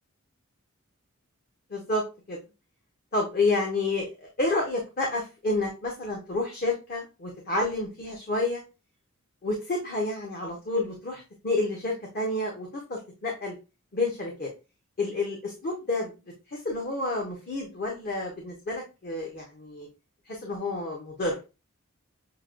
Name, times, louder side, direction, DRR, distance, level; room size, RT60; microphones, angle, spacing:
voice 1, 1.7-2.4 3.1-4.1 4.4-8.6 9.4-13.5 13.9-14.5 15.0-16.1 16.5-19.9 20.3-21.4, left 2 dB, 45° left, -1 dB, 0.9 m, -29 dB
6.5 x 2.2 x 2.4 m, 0.29 s
head